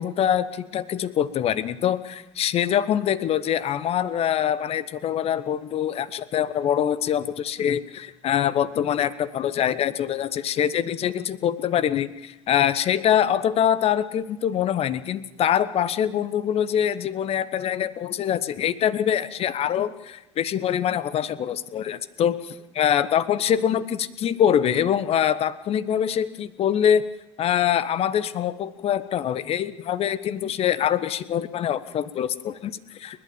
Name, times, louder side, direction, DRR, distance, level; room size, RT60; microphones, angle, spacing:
voice 1, 0.0-27.0 27.4-33.2, left 9 dB, 40° left, 16 dB, 1.1 m, -24 dB
30.0 x 12.0 x 7.2 m, 0.95 s
figure-of-eight pair, 65°, 15 cm